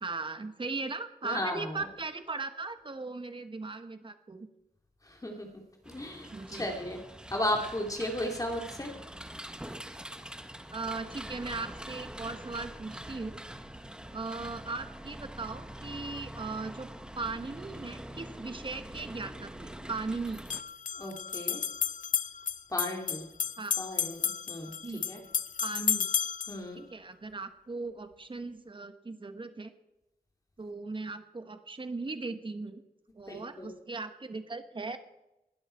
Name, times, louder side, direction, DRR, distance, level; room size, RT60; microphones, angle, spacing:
voice 1, 0.0-4.5 6.3-6.7 10.7-13.4 14.1-16.9 17.1-20.4 23.6-23.8 24.8-25.3 25.6-26.1 26.9-29.7 30.6-32.8 33.2-35.0, right 3 dB, 30° right, 9 dB, 1.4 m, -38 dB
voice 2, 1.2-1.7 5.1-5.5 5.9-7.0 7.3-8.9 21.0-21.6 22.7-23.2 23.8-24.7 25.1-25.2 26.5-26.8 33.3-33.7, left 1 dB, 20° left, 2 dB, 2.6 m, -35 dB
sound 1, 5.8-20.6, right 1 dB, 5° right, 1.1 m, -44 dB
sound 2, 18.7-18.8 20.3-26.6, left 7 dB, 55° left, 0.6 m, -32 dB
20.0 x 12.5 x 4.5 m, 0.93 s
wide cardioid pair, 125°, 16 cm